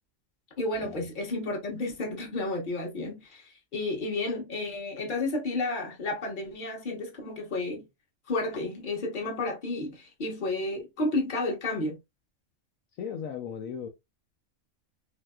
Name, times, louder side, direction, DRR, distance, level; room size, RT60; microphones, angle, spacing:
voice 1, 0.6-7.8 8.3-12.0, left 2 dB, 40° left, 1.1 m, -31 dB
voice 2, 13.0-13.9, left 7 dB, 75° left, 1.0 m, -36 dB
3.3 x 2.8 x 2.2 m
omnidirectional pair, 1.5 m